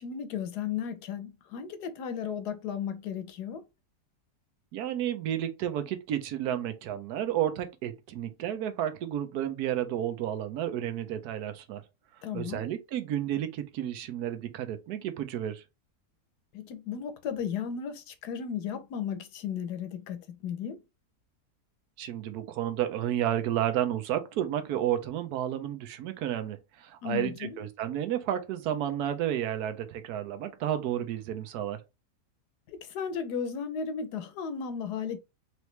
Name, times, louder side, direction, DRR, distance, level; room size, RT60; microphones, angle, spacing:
voice 1, 0.0-3.6 12.2-12.6 16.5-20.8 27.0-27.6 32.7-35.2, left 7 dB, 85° left, 1.3 m, -35 dB
voice 2, 4.7-11.8 12.3-15.6 22.0-31.8, right 11 dB, 80° right, 1.2 m, -31 dB
4.0 x 3.2 x 3.2 m
omnidirectional pair, 1.7 m